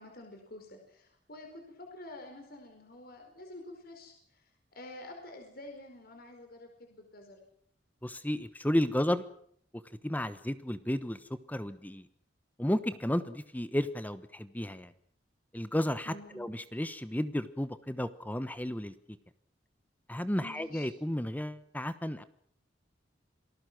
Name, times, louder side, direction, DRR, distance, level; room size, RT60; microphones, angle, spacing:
voice 1, 0.0-7.4 16.0-16.5 20.4-20.9, left 1 dB, 55° left, 3 dB, 4.8 m, -49 dB
voice 2, 8.0-9.2 10.0-11.2 11.5-12.1 12.6-14.9 15.5-18.9 20.1-22.2, left 1 dB, 10° left, 13 dB, 1.1 m, -32 dB
27.5 x 19.5 x 6.2 m, 0.63 s
head